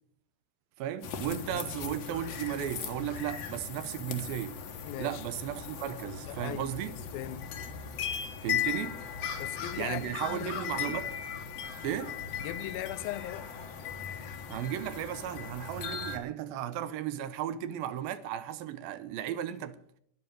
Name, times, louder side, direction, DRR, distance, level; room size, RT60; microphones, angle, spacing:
voice 1, 0.8-4.6 5.0-6.9 8.4-9.0 9.8-11.1 11.8-12.2 14.5-19.8, right 11 dB, 85° right, 2.6 m, -35 dB
sound 1, 1.0-16.2, left 7 dB, 55° left, 2.1 m, -38 dB
voice 2, 4.8-5.2 6.3-7.5 9.4-11.0 12.4-13.5, left 14 dB, 90° left, 2.6 m, -39 dB
10.5 x 10.0 x 9.0 m
omnidirectional pair, 4.1 m